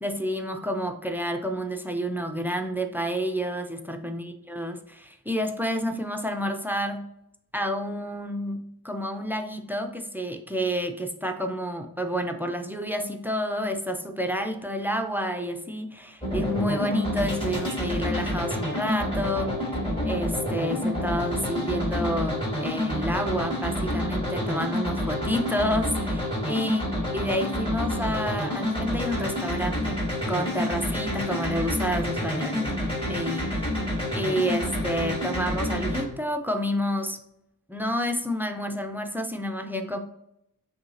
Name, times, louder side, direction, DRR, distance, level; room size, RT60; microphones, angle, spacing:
voice 1, 0.0-7.0 7.5-19.5 20.0-26.8 27.1-30.0 30.3-33.5 34.1-37.2 37.7-40.0, equal, 5° right, 6 dB, 0.4 m, -29 dB
sound 1, 16.2-36.0, left 1 dB, 15° left, 1.5 m, -28 dB
6.0 x 2.7 x 2.6 m, 0.79 s
wide cardioid pair, 110°, 36 cm